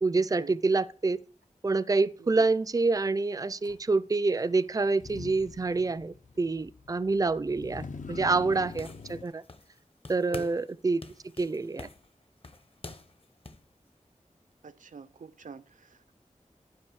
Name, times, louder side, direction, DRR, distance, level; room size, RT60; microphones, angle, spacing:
voice 1, 0.0-1.2 1.6-9.4 10.1-11.0 11.4-11.9, right 3 dB, 30° right, 0.4 m, -27 dB
Motor vehicle (road), 3.6-3.8 4.9-9.2, left 4 dB, 75° left, 0.8 m, -44 dB
sound 1, 8.5-9.8 10.0-10.7 11.0-13.7, left 2 dB, 45° left, 0.9 m, -46 dB
voice 2, 14.6-16.2, right 4 dB, 90° right, 0.5 m, -45 dB
12.0 x 5.0 x 6.3 m
wide cardioid pair, 65°, 13 cm